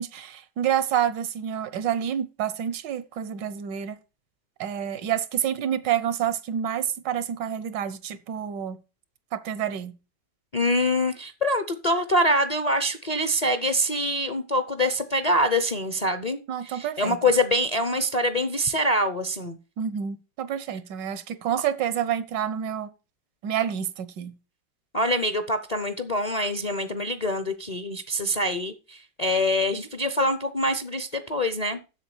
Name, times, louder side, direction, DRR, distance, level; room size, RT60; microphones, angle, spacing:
voice 1, 0.0-4.0 4.6-8.8 9.3-9.9 16.5-17.2 19.8-22.9 23.4-24.3, right 9 dB, 85° right, 1.5 m, -28 dB
voice 2, 10.5-19.6 24.9-31.8, left 1 dB, 40° left, 0.5 m, -25 dB
7.7 x 6.8 x 7.0 m
omnidirectional pair, 1.9 m